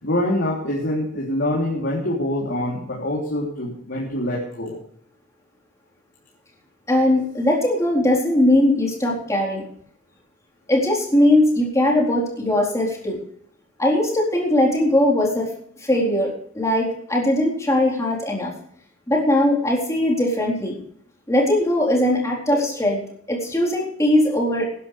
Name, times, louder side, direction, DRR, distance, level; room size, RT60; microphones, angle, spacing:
voice 1, 0.0-4.8, left 1 dB, 60° left, -4 dB, 3.4 m, -25 dB
voice 2, 6.9-9.6 10.7-13.2 13.8-15.5 15.8-18.5 19.1-20.8 21.3-23.0 23.3-24.7, left 1 dB, 15° left, -3 dB, 4.1 m, -20 dB
19.5 x 11.0 x 3.4 m, 0.67 s
head